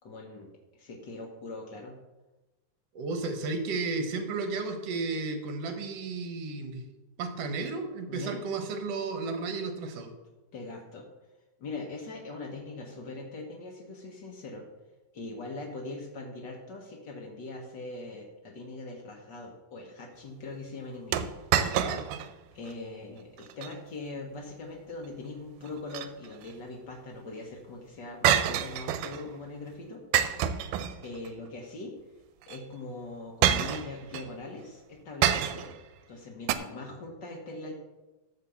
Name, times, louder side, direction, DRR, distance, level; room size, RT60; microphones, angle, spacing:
voice 1, 0.0-2.0 8.1-8.4 10.5-11.1 11.6-14.6 15.1-21.2 22.5-30.3 31.0-31.9 32.5-35.8 36.1-37.7, left 2 dB, 85° left, 0 dB, 0.9 m, -41 dB
voice 2, 2.9-6.8 7.2-10.1 21.6-22.0, right 3 dB, 60° right, 6 dB, 1.7 m, -33 dB
sound 1, 21.1-22.3 22.7-22.8 23.4-23.7 25.6-26.5 28.2-29.2 30.1-31.3 32.4-32.6 33.4-34.3 35.2-35.8 36.5-36.6, right 10 dB, 80° right, 2.1 m, -27 dB
13.0 x 4.5 x 7.1 m, 1.1 s
omnidirectional pair, 4.1 m